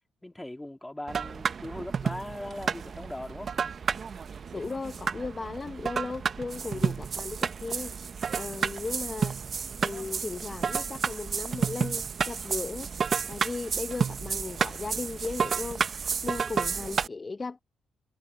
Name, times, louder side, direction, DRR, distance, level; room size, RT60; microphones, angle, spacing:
voice 1, 0.2-3.5, left 1 dB, 10° left, 2.4 m, -39 dB
sound 1, 1.1-17.1, right 6 dB, 45° right, 0.8 m, -31 dB
voice 2, 4.5-9.4 9.8-17.6, left 3 dB, 30° left, 0.7 m, -37 dB
cardioid pair, 90°, 0 cm